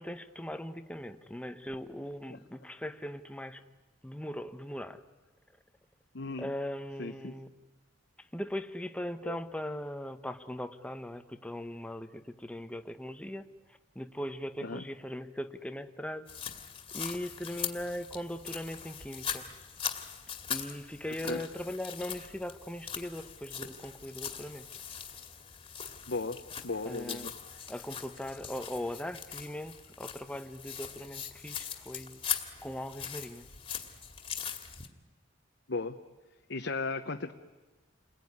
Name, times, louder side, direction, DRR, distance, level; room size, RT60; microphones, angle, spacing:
voice 1, 0.0-3.6 4.0-5.0 6.4-7.5 8.2-13.5 13.9-16.3 16.9-19.5 20.5-24.7 26.8-27.3 27.7-32.2 32.6-33.5, left 1 dB, 5° left, 9 dB, 1.0 m, -39 dB
voice 2, 6.1-6.5 7.0-7.3 9.2-9.4 14.6-14.8 21.2-21.4 26.1-27.3 35.7-36.0 36.5-37.3, left 3 dB, 60° left, 5 dB, 0.9 m, -36 dB
sound 1, 16.3-34.9, left 8 dB, 25° left, 2.2 m, -41 dB
29.0 x 21.0 x 9.7 m, 1.2 s
head